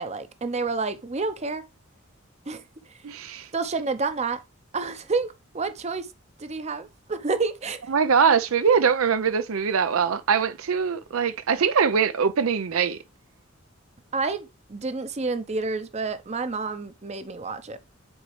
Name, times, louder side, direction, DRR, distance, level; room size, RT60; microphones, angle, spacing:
voice 1, 0.0-1.6 2.5-2.6 3.5-4.4 4.7-6.1 6.4-7.8 14.1-17.8, right 4 dB, 30° right, 0.6 m, -29 dB
voice 2, 3.0-3.5 7.9-13.0, right 6 dB, 85° right, 0.5 m, -22 dB
7.9 x 4.1 x 3.1 m
head